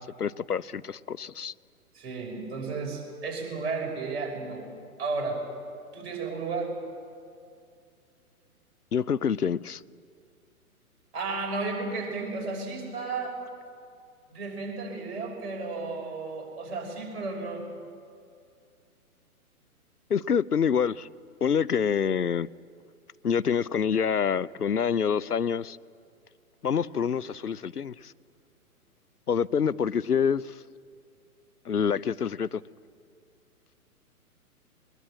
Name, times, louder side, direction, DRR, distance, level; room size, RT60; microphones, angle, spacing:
voice 1, 0.2-1.5 8.9-9.8 20.1-21.1 21.4-22.5 23.2-25.8 26.6-28.1 29.3-30.6 31.6-32.6, left 7 dB, 85° left, 0.6 m, -26 dB
voice 2, 1.9-4.6 5.0-5.4 5.9-6.7 11.1-13.4 14.3-17.6, right 3 dB, 45° right, 5.8 m, -33 dB
21.0 x 20.5 x 8.7 m
figure-of-eight pair, 125°, 45 cm